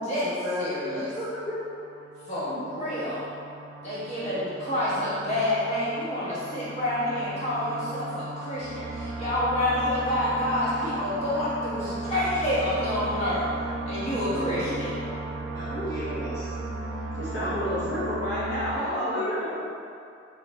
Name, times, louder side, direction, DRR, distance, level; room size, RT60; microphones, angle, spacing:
voice 1, 0.0-1.5 15.7-15.9 17.1-19.5, left 1 dB, 65° left, -9 dB, 0.8 m, -30 dB
voice 2, 0.6-1.1 2.3-3.2 3.8-13.5 13.9-14.9, left 1 dB, 35° left, -11 dB, 1.3 m, -28 dB
sound 1, 0.7-18.8, right 2 dB, 75° right, 0.3 m, -36 dB
voice 3, 2.4-3.0 4.2-4.5 6.6-6.7 14.3-14.9 15.5-16.5 17.4-18.1 18.7-19.7, right 1 dB, 15° left, -11 dB, 0.5 m, -38 dB
3.3 x 2.7 x 3.1 m, 2.4 s
head